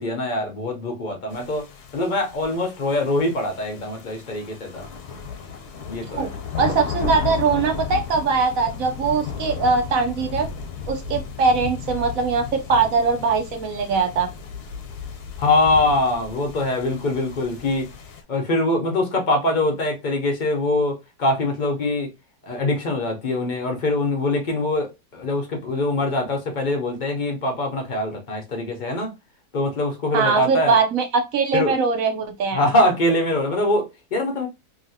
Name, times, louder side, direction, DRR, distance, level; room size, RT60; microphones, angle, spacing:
voice 1, 0.0-1.6 1.9-4.9 5.9-6.3 15.4-17.9 18.3-22.1 22.4-29.1 29.5-30.7 31.5-31.7 32.5-34.5, left 2 dB, 55° left, 0.5 m, -23 dB
sound 1, 1.3-18.2, left 7 dB, 85° left, 1.2 m, -34 dB
voice 2, 6.6-10.5 10.9-14.3 30.1-32.6, right 4 dB, 70° right, 1.0 m, -21 dB
2.9 x 2.8 x 2.6 m
omnidirectional pair, 1.6 m